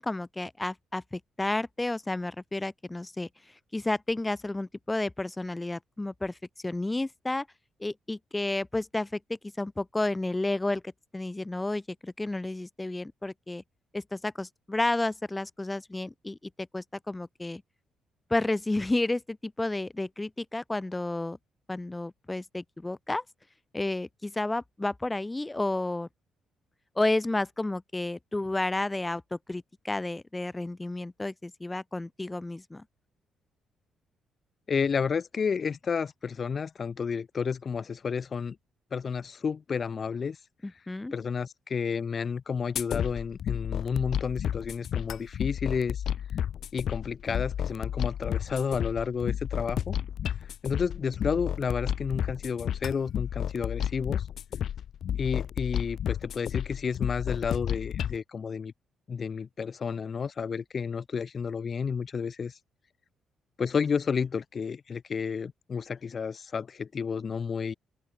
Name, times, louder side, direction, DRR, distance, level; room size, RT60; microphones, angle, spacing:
voice 1, 0.0-3.3 3.7-6.4 6.6-7.5 7.8-9.2 9.6-13.6 13.9-17.6 18.3-21.4 21.7-23.2 23.7-26.1 26.9-32.8 40.6-41.1, left 2 dB, 15° left, 1.2 m, -31 dB
voice 2, 34.7-38.6 38.9-40.4 41.1-46.0 46.7-50.0 50.6-54.3 55.2-58.7 59.1-62.6 63.6-67.7, left 6 dB, 45° left, 2.1 m, -31 dB
sound 1, 42.8-58.2, left 9 dB, 65° left, 2.6 m, -32 dB
open air
cardioid pair, 90°, 0 cm